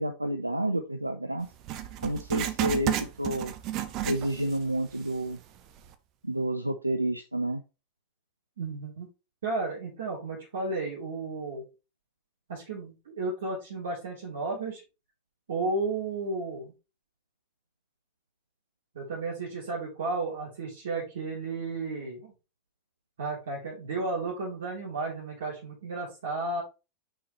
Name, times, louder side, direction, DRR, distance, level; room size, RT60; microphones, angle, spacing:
voice 1, 0.0-1.5 2.0-3.5 4.0-5.4 6.2-7.6, right 1 dB, 85° right, 7 dB, 0.5 m, -30 dB
Writing, 1.6-4.7 5.0-5.1 5.8-5.9, right 12 dB, 40° right, 0.8 m, -32 dB
voice 2, 8.6-9.1 9.4-11.7 12.5-14.8 15.5-16.7 18.9-22.3 23.2-26.6, right 3 dB, 65° right, -6 dB, 3.6 m, -33 dB
6.2 x 5.6 x 3.1 m, 0.29 s
figure-of-eight pair, 90°, 0 cm